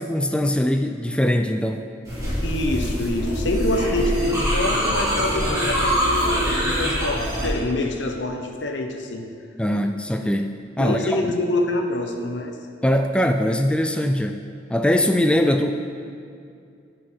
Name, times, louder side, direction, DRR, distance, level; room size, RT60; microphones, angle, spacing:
voice 1, 0.0-1.9 9.6-11.2 12.8-14.4 14.7-15.7, left 1 dB, 5° left, 6 dB, 0.3 m, -21 dB
sound 1, 2.1-7.5, equal, 15° right, 2.7 m, -24 dB
voice 2, 2.4-9.2 9.7-9.8 10.8-12.5, left 1 dB, 75° left, 4 dB, 1.0 m, -26 dB
10.5 x 7.7 x 4.5 m, 2.4 s
head